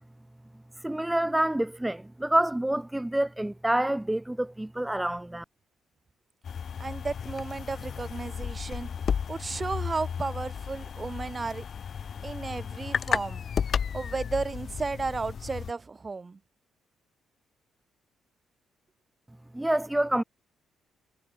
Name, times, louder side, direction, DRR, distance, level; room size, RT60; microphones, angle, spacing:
voice 1, 0.8-5.4 19.5-20.2, right 1 dB, 10° right, 2.9 m, -27 dB
sound 1, 6.4-15.7, left 7 dB, 50° left, 1.3 m, -33 dB
voice 2, 6.8-8.9 9.3-11.6 12.2-13.4 13.9-16.4, right 4 dB, 30° right, 3.4 m, -33 dB
cardioid pair, 90°, 0 cm